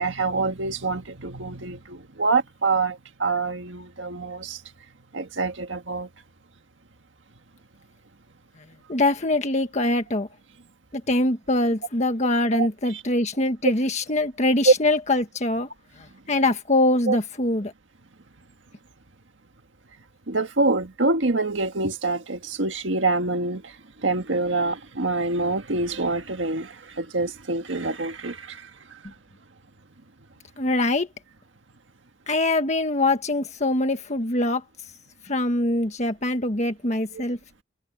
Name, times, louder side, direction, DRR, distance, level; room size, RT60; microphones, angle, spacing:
voice 1, 0.0-4.6 5.1-6.1 12.5-13.0 14.7-14.8 17.1-17.2 20.3-23.8 24.0-29.0 37.1-37.2, right 3 dB, 90° right, 1.7 m, -26 dB
voice 2, 8.9-10.3 10.9-15.7 16.3-17.7 30.6-31.1 32.3-34.6 35.2-37.4, left 2 dB, 40° left, 1.5 m, -23 dB
head